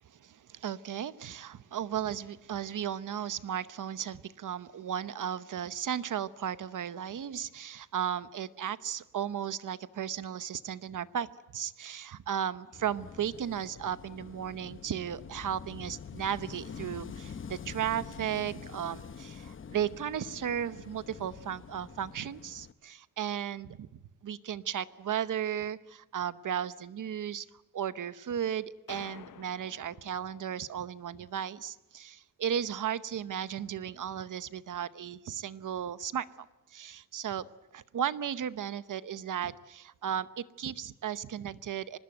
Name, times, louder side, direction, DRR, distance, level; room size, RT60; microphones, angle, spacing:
voice 1, 0.0-11.3 11.5-23.9 24.2-27.5 27.7-37.5 37.7-42.0, right 9 dB, 65° right, 15 dB, 0.9 m, -35 dB
Wind / Waves surf, 12.7-22.7, left 6 dB, 35° left, 0.8 m, -46 dB
sound 1, 28.9-30.9, left 10 dB, 65° left, 0.8 m, -51 dB
25.0 x 20.0 x 9.1 m, 0.96 s
wide cardioid pair, 170°, 34 cm